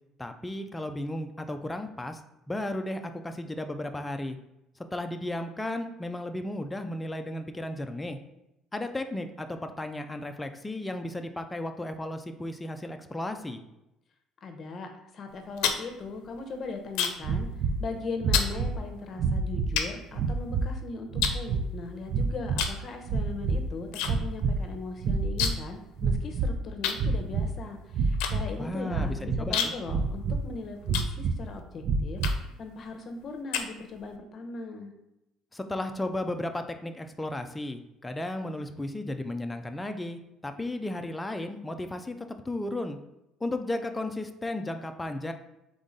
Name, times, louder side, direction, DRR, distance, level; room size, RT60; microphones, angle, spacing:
voice 1, 0.2-2.2 2.5-4.4 4.9-8.2 8.7-13.6 28.6-29.7 35.5-43.0 43.4-45.3, left 1 dB, 10° left, 6 dB, 0.4 m, -34 dB
voice 2, 14.4-17.5 17.8-32.2 32.6-34.9, left 3 dB, 40° left, 5 dB, 0.8 m, -39 dB
sound 1, 15.3-17.4 17.6-17.9 18.3-18.6 19.2-19.3 19.8-20.7 21.2-22.1 22.5-22.8 23.1-24.1 24.4-24.5 24.7-25.8 26.0-26.1 26.8-31.6 32.2-32.6 33.1-34.2, left 8 dB, 85° left, 0.5 m, -31 dB
sound 2, 17.2-17.8 18.2-18.8 19.2-19.8 20.1-20.7 21.1-21.6 22.1-22.7 23.0-23.7 24.0-24.7 25.0-25.6 26.0-26.6 26.9-27.5 27.9-28.5 28.9-29.5 29.9-30.5 30.8-31.4 31.8-32.4, right 4 dB, 55° right, 0.4 m, -28 dB
3.8 x 3.6 x 3.9 m, 0.88 s
cardioid pair, 110°, 0 cm